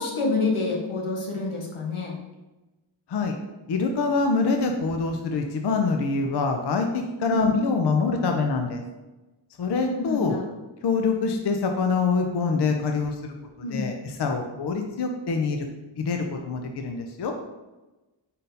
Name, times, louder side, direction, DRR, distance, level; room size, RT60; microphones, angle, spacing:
voice 1, 0.0-2.2 7.3-7.5 9.8-10.4 13.6-13.9, left 3 dB, 85° left, -1 dB, 1.0 m, -27 dB
voice 2, 3.7-8.8 9.6-10.4 10.8-15.7 16.0-17.3, left 4 dB, 55° left, 4 dB, 0.5 m, -25 dB
4.1 x 3.7 x 2.6 m, 1.1 s
cardioid pair, 45°, 49 cm